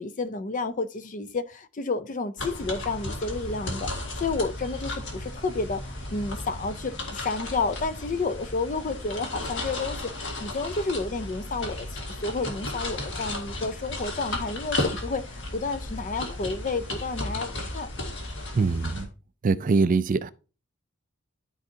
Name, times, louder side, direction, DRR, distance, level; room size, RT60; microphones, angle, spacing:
voice 1, 0.0-17.9, left 3 dB, 35° left, 0.5 m, -31 dB
sound 1, 2.4-19.0, left 1 dB, 55° left, 1.8 m, -34 dB
voice 2, 18.5-19.1 19.4-20.3, right 4 dB, 40° right, 0.3 m, -23 dB
12.0 x 4.5 x 2.8 m
head